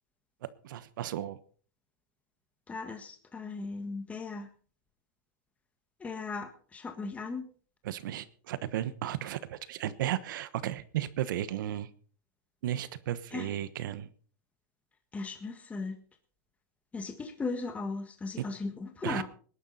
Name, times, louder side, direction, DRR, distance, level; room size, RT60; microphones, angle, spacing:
voice 1, 0.6-1.4 7.8-11.9 12.6-14.1 18.4-18.5 19.0-19.2, right 12 dB, 70° right, 16 dB, 1.1 m, -34 dB
voice 2, 2.7-4.5 6.0-7.4 13.3-13.5 15.1-15.9 16.9-19.2, left 4 dB, 10° left, 5 dB, 1.6 m, -37 dB
20.5 x 11.0 x 4.2 m, 0.43 s
supercardioid pair, 145°, 11 cm